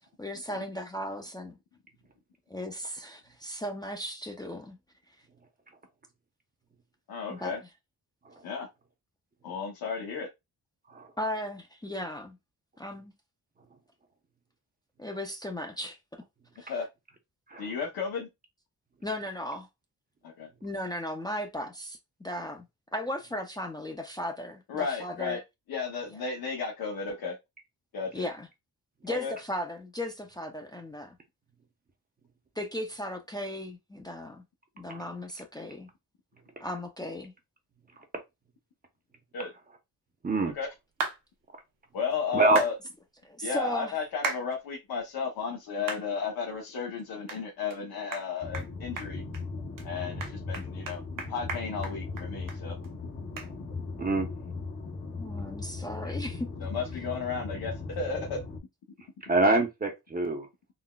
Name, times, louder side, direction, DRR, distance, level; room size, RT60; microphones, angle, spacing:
voice 1, 0.2-1.6 2.5-4.8 7.3-7.7 11.2-12.4 12.8-13.1 15.0-16.2 16.6-16.7 19.0-19.7 20.6-22.7 22.9-25.4 26.1-26.2 28.1-28.5 29.0-31.2 32.6-34.4 34.8-35.9 36.6-37.3 43.2-44.0 55.2-56.7, left 1 dB, 10° left, 0.4 m, -36 dB
voice 2, 7.1-7.6 8.4-8.7 9.4-10.3 16.7-16.9 17.6-18.3 20.2-20.5 24.7-25.4 25.7-27.4 27.9-28.3 29.1-29.3 39.3-39.5 40.5-40.7 41.9-42.7 43.4-49.2 49.8-51.0 51.3-52.8 56.6-58.4, left 5 dB, 80° left, 0.8 m, -33 dB
sound 1, 41.0-41.2 42.6-42.7 44.2-44.4 45.0-45.1 45.9-46.0 46.5-46.6 47.3-47.4 47.7-47.8 48.1-48.3 48.5-48.7 49.0-49.4 49.8-49.9 50.2-52.6 52.8-52.9 53.4-53.5, right 4 dB, 65° right, 0.9 m, -34 dB
sound 2, 48.4-58.6, left 3 dB, 40° left, 0.8 m, -38 dB
voice 3, 59.3-60.5, right 2 dB, 25° right, 0.7 m, -25 dB
3.9 x 2.1 x 2.2 m
wide cardioid pair, 125°, 36 cm